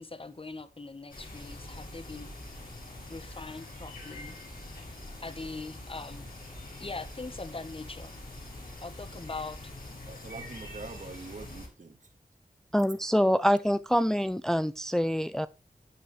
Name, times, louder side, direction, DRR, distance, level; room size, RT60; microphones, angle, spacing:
voice 1, 0.0-2.3 3.1-4.4 5.2-6.3 6.8-8.1 8.8-9.7, left 3 dB, 40° left, 1.1 m, -41 dB
sound 1, 1.1-11.7, left 1 dB, 75° left, 6.0 m, -44 dB
voice 2, 10.0-12.1, right 3 dB, 60° right, 2.1 m, -44 dB
voice 3, 12.7-15.5, equal, 5° left, 0.5 m, -25 dB
12.5 x 8.5 x 3.3 m
wide cardioid pair, 60°, 15 cm